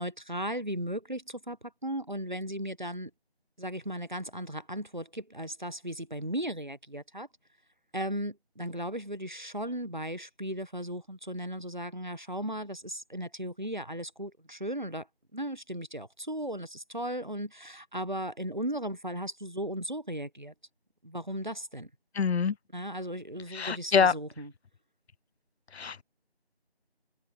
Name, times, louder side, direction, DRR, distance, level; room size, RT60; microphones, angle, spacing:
voice 1, 0.0-1.6 1.8-3.1 3.6-7.3 7.9-15.1 15.3-20.5 21.0-21.9 22.7-24.5, right 1 dB, 45° right, 1.0 m, -36 dB
voice 2, 22.2-22.5 23.5-24.1 25.7-26.0, left 6 dB, 80° left, 0.5 m, -25 dB
figure-of-eight pair, 180°, 32 cm